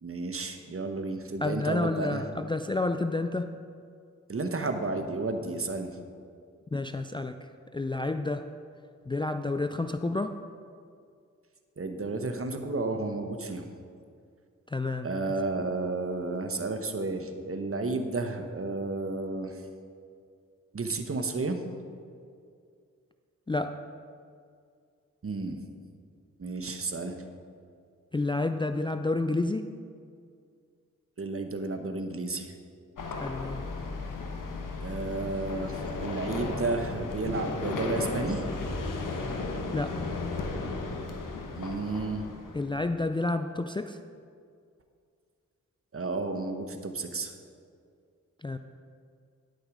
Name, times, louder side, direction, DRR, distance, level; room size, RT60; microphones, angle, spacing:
voice 1, 0.0-2.2 4.3-6.0 11.8-13.7 15.0-19.6 20.7-21.6 25.2-25.6 26.4-27.2 31.2-32.5 34.8-38.5 41.6-42.3 45.9-47.3, right 3 dB, 45° right, 6 dB, 1.0 m, -32 dB
voice 2, 1.4-3.5 6.7-7.4 7.7-8.5 9.1-10.4 14.7-15.1 23.5-23.8 28.1-29.7 33.2-33.6 39.7-40.0 42.5-44.0 48.4-48.6, left 2 dB, 15° left, 8 dB, 0.4 m, -30 dB
sound 1, 33.0-42.9, left 3 dB, 80° left, 1.1 m, -35 dB
10.5 x 6.4 x 4.9 m, 2.3 s
cardioid pair, 45°, 32 cm